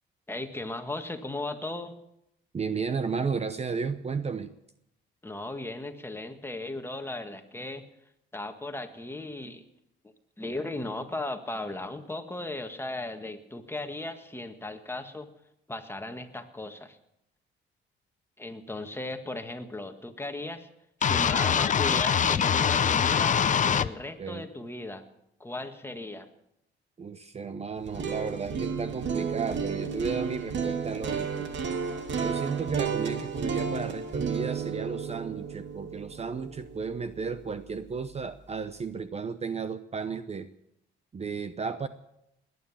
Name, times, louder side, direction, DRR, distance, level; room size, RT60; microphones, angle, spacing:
voice 1, 0.3-1.9 5.2-7.8 8.3-9.6 10.4-15.3 15.7-17.0 18.4-20.7 21.0-23.4 23.6-25.0 25.4-26.3, left 2 dB, 10° left, 6 dB, 1.7 m, -36 dB
voice 2, 2.5-4.5 24.2-24.5 27.0-31.3 32.2-40.5 41.1-41.9, right 5 dB, 30° right, 12 dB, 0.8 m, -33 dB
sound 1, 21.0-23.9, left 7 dB, 40° left, 0.6 m, -23 dB
sound 2, 27.8-37.8, right 6 dB, 65° right, 2.2 m, -33 dB
20.5 x 9.5 x 7.1 m, 0.83 s
cardioid pair, 90°, 20 cm